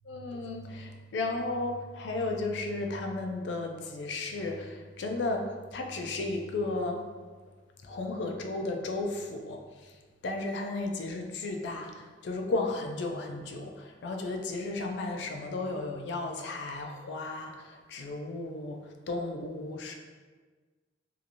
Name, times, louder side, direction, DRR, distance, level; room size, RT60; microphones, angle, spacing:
voice 1, 0.1-7.1 7.8-19.9, left 2 dB, 65° left, 3 dB, 0.4 m, -34 dB
2.8 x 2.5 x 2.6 m, 1.4 s
head